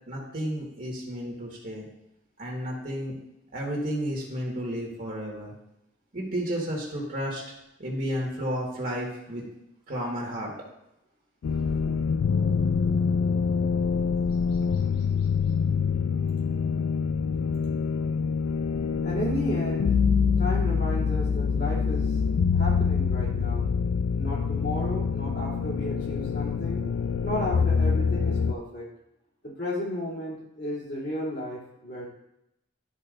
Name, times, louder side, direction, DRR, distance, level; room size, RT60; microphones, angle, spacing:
voice 1, 0.1-1.9 2.4-3.2 3.5-5.5 6.1-7.4 7.8-9.4 9.9-10.5, equal, 50° right, -2 dB, 1.6 m, -32 dB
sound 1, 11.4-28.5, left 5 dB, 85° left, 0.3 m, -25 dB
voice 2, 19.0-20.0 20.4-22.1 22.5-23.6 24.1-26.8 27.2-28.9 29.4-32.1, left 1 dB, 60° left, -6 dB, 2.8 m, -33 dB
12.0 x 4.3 x 2.5 m, 0.84 s
head